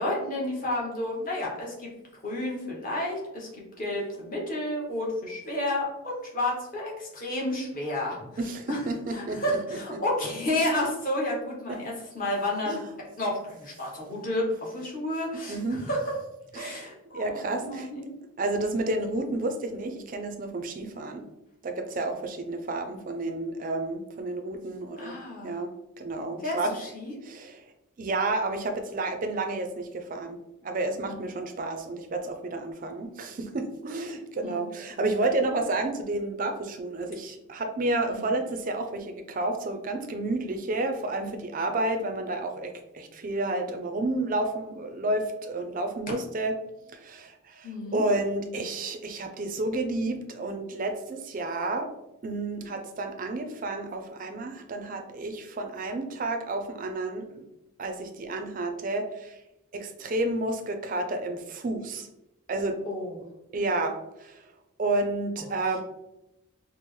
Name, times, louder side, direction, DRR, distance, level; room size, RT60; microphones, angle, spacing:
voice 1, 0.0-1.9 2.2-3.5 3.8-8.3 8.7-8.8 9.1-12.8 13.2-16.1 16.5-18.1 25.0-25.6 26.4-27.1 31.0-31.2 34.4-34.6 38.1-38.3 47.6-48.0 62.8-63.2, left 1 dB, 40° left, -3 dB, 0.9 m, -31 dB
voice 2, 8.4-10.0 11.7-11.8 12.7-12.8 15.5-15.8 16.5-16.8 17.1-17.9 18.4-21.3 21.6-25.1 25.4-25.7 26.0-26.7 27.2-27.6 28.0-46.6 46.9-51.9 52.2-57.5 57.8-59.4 59.7-62.1 62.5-62.8 63.5-64.4 64.8-65.8, right 2 dB, 40° right, 6 dB, 0.3 m, -31 dB
4.2 x 2.0 x 3.0 m, 0.92 s
head